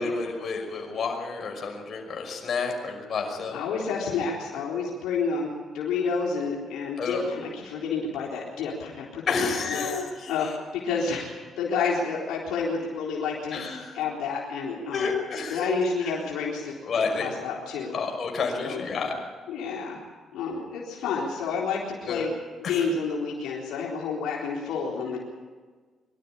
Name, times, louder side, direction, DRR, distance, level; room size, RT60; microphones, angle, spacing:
voice 1, 0.0-3.6 7.0-7.2 9.3-10.3 13.5-13.9 14.9-15.8 16.0-16.1 16.8-17.3 17.9-19.1 22.1-22.3 22.6-22.8, left 4 dB, 55° left, 2 dB, 5.7 m, -30 dB
voice 2, 3.5-5.5 5.7-9.9 10.3-13.6 13.9-15.1 15.5-16.7 17.2-18.0 18.6-18.9 19.5-20.0 20.3-22.3 22.6-25.2, left 5 dB, 85° left, -3 dB, 3.9 m, -29 dB
24.0 x 12.5 x 9.9 m, 1.5 s
cardioid pair, 90°, 0 cm